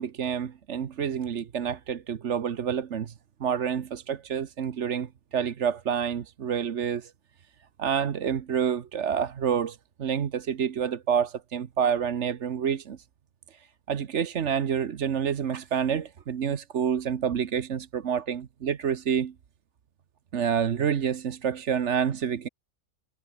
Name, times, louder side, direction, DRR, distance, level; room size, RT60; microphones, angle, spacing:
voice 1, 0.0-3.1 3.4-7.1 7.8-13.0 13.5-19.3 20.3-22.5, right 8 dB, 55° right, 1.3 m, -28 dB
omnidirectional pair, 1.5 m